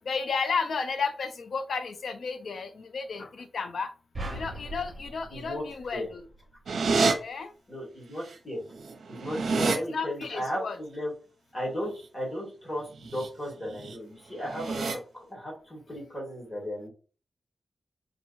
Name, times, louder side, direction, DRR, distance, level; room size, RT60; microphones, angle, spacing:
voice 1, 0.1-3.9 4.3-6.2 7.2-7.5 9.9-10.8, left 5 dB, 75° left, 8 dB, 0.5 m, -32 dB
sound 1, 4.1-6.6, right 1 dB, 30° right, 1.2 m, -40 dB
voice 2, 5.3-5.6 5.9-6.1 7.7-8.6 9.1-11.1 11.5-16.9, equal, 20° left, -4 dB, 2.1 m, -35 dB
sound 2, 6.7-7.1 8.3-8.4 8.7-9.8 12.9-13.3 13.7-14.0 14.4-14.9, right 4 dB, 85° right, 0.7 m, -27 dB
5.1 x 3.0 x 2.7 m, 0.37 s
wide cardioid pair, 180°, 0 cm